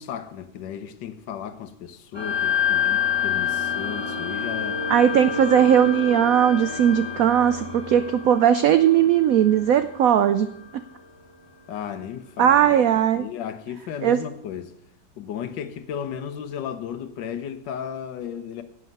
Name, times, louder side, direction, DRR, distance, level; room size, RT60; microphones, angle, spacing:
voice 1, 0.0-4.8 11.7-12.7 13.1-14.7 15.2-18.6, left 8 dB, 70° left, 1.5 m, -34 dB
sound 1, 2.1-10.9, left 7 dB, 20° left, 0.8 m, -28 dB
voice 2, 4.9-10.5 10.7-10.8 12.4-13.2 14.0-14.2, right 9 dB, 85° right, 0.7 m, -18 dB
11.0 x 8.5 x 5.4 m
omnidirectional pair, 2.0 m